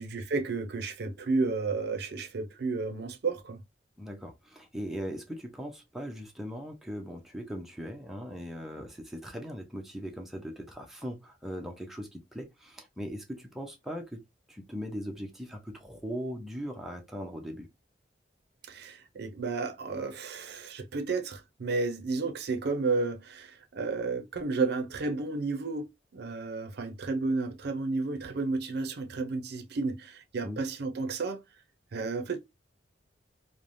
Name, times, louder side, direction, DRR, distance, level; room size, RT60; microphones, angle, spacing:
voice 1, 0.0-3.6 18.7-25.9 26.1-31.4 31.9-32.4, right 3 dB, 60° right, 0.5 m, -32 dB
voice 2, 4.0-14.2 14.5-17.7 30.4-30.6, equal, ahead, 0.5 m, -39 dB
3.1 x 2.0 x 2.4 m
head